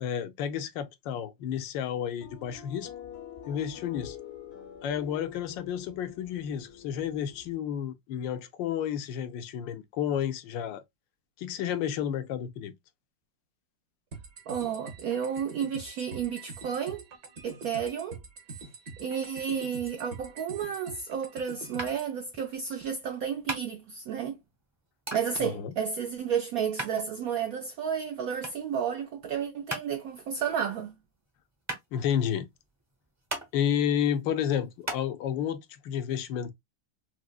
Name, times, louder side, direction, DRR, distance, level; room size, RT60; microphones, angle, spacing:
voice 1, 0.0-2.9 3.5-4.2 4.8-10.8 11.4-12.8 25.4-25.8 31.9-32.5 33.5-36.5, left 9 dB, 80° left, 1.2 m, -31 dB
sound 1, 2.2-7.6, left 8 dB, 55° left, 0.7 m, -46 dB
sound 2, 14.1-22.1, right 3 dB, 55° right, 1.4 m, -45 dB
voice 2, 14.5-17.0 17.4-18.2 19.0-24.4 25.1-30.9, right 7 dB, 75° right, 0.8 m, -32 dB
sound 3, 21.8-35.0, right 2 dB, 15° right, 0.5 m, -41 dB
4.8 x 2.0 x 2.3 m
omnidirectional pair, 2.0 m